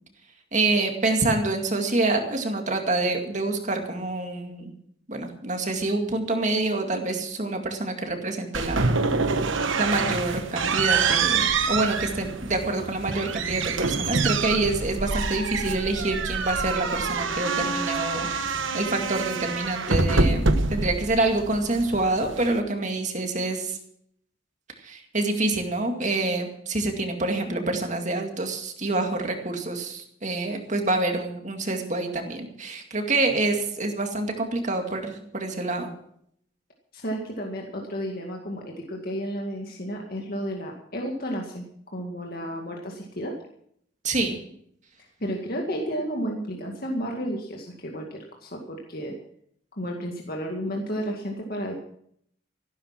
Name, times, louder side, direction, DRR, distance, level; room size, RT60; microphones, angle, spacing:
voice 1, 0.5-4.7 5.1-9.0 9.8-23.8 24.8-35.9 44.0-44.4, right 2 dB, 35° right, 4 dB, 2.2 m, -27 dB
sound 1, 8.5-22.6, right 4 dB, 70° right, 1.2 m, -26 dB
voice 2, 36.9-41.6 41.9-43.3 45.2-49.1 49.8-51.7, equal, 45° left, 0 dB, 2.1 m, -32 dB
14.5 x 12.5 x 6.0 m, 0.68 s
head